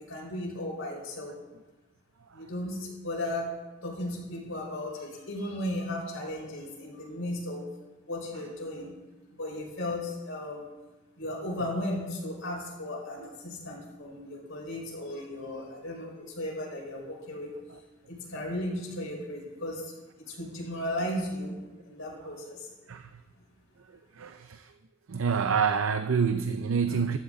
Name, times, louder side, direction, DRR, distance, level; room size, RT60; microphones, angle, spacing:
voice 1, 0.0-1.4 2.3-3.5 3.8-7.6 8.0-8.9 9.4-10.7 11.2-17.5 18.1-22.7, left 1 dB, 65° left, -2 dB, 4.9 m, -35 dB
voice 2, 24.2-24.7 25.1-27.2, right 6 dB, 70° right, 9 dB, 0.6 m, -27 dB
14.5 x 12.5 x 3.9 m, 1.2 s
head